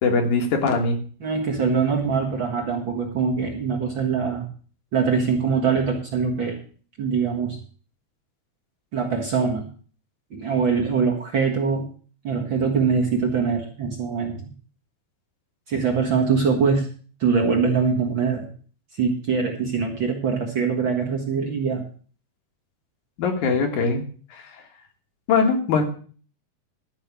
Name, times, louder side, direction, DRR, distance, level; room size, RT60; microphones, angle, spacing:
voice 1, 0.0-1.0 23.2-24.0 24.3-24.4 25.3-25.8, left 4 dB, 70° left, 3 dB, 3.0 m, -21 dB
voice 2, 1.2-4.5 4.9-6.6 7.0-7.6 8.9-9.7 10.3-11.9 12.2-14.4 15.7-16.9 17.2-18.5 19.0-21.8, right 5 dB, 45° right, 0 dB, 1.9 m, -23 dB
12.0 x 5.6 x 8.2 m, 0.43 s
omnidirectional pair, 3.8 m